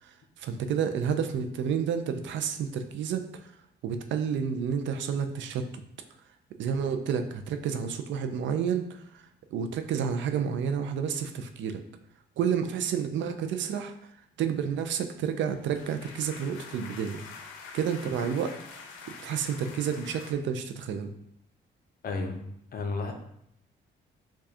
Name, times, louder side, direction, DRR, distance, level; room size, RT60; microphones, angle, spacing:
voice 1, 0.0-3.5 3.8-5.7 6.6-9.2 9.5-11.8 12.4-13.9 14.4-17.2 17.7-18.5 19.2-21.1, right 7 dB, 70° right, 8 dB, 0.4 m, -30 dB
sound 1, 15.3-20.3, left 5 dB, 90° left, 0.5 m, -46 dB
voice 2, 22.0-23.1, left 3 dB, 45° left, 4 dB, 0.6 m, -33 dB
4.7 x 2.3 x 2.7 m, 0.74 s
cardioid pair, 90°, 20 cm